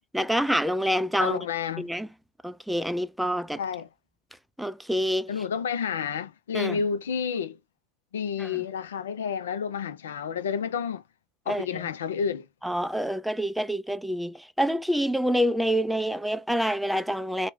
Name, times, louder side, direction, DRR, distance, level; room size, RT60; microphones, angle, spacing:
voice 1, 0.1-1.4 1.8-2.1 2.4-3.6 4.6-5.3 6.5-6.8 8.4-8.6 11.5-11.9 12.6-17.5, equal, ahead, 0.4 m, -27 dB
voice 2, 1.2-1.9 3.6-3.9 5.3-7.6 8.1-11.0 11.5-12.5, left 7 dB, 75° left, 0.5 m, -30 dB
3.0 x 2.3 x 2.7 m
figure-of-eight pair, 80°, 0 cm